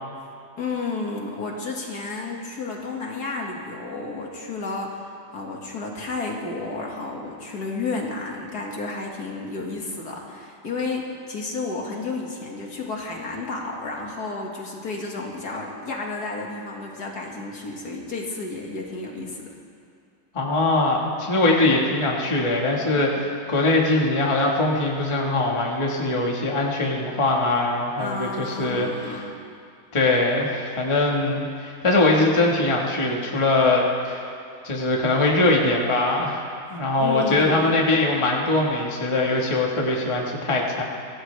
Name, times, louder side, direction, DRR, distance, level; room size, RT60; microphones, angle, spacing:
voice 1, 0.6-19.5 28.0-29.3 37.0-37.8, left 3 dB, 60° left, -1 dB, 2.4 m, -32 dB
voice 2, 20.3-29.2 29.9-34.2 34.6-40.8, left 2 dB, 20° left, -1 dB, 1.4 m, -22 dB
24.0 x 16.5 x 3.3 m, 2.4 s
omnidirectional pair, 1.9 m